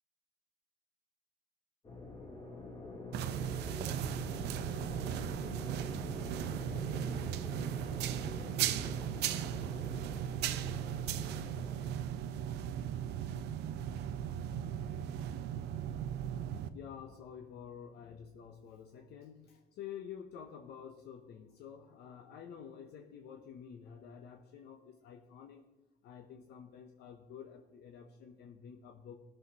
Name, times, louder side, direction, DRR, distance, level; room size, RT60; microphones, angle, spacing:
sound 1, 1.8-11.9, left 2 dB, 30° left, 2.3 m, -46 dB
sound 2, 3.1-16.7, right 10 dB, 85° right, 0.7 m, -37 dB
voice 1, 16.7-25.7 26.0-29.2, left 8 dB, 75° left, 5 dB, 0.9 m, -49 dB
16.0 x 6.7 x 4.1 m, 1.2 s
cardioid pair, 110°, 17 cm